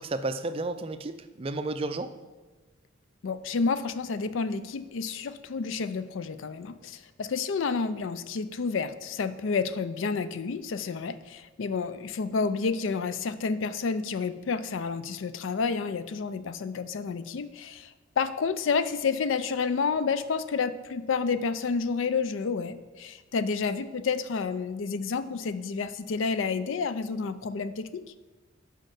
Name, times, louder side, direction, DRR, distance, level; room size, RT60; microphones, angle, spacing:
voice 1, 0.0-2.1, right 2 dB, 25° right, 10 dB, 0.4 m, -32 dB
voice 2, 3.2-28.0, left 5 dB, 70° left, 13 dB, 0.4 m, -30 dB
6.4 x 5.3 x 6.4 m, 1.2 s
head